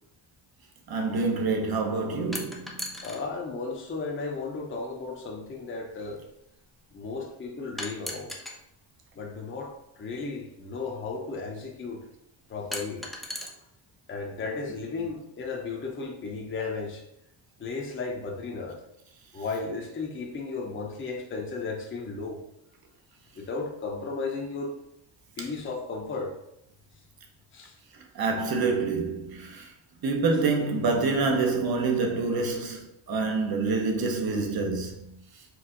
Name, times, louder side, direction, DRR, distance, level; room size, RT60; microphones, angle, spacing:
voice 1, 0.9-2.7 28.2-29.6 30.0-34.9, right 3 dB, 45° right, 0.9 m, -26 dB
sound 1, 2.3-3.2 4.4-4.5 7.8-8.6 10.0-10.1 12.7-13.5, left 1 dB, ahead, 0.4 m, -36 dB
voice 2, 3.0-6.2 6.9-8.3 9.2-12.0 12.5-13.1 14.1-17.0 17.6-18.8 19.3-22.4 23.3-24.8 25.4-26.3 27.5-27.7, left 4 dB, 25° left, 0.7 m, -34 dB
4.6 x 2.6 x 3.8 m
cardioid pair, 135°, 50 cm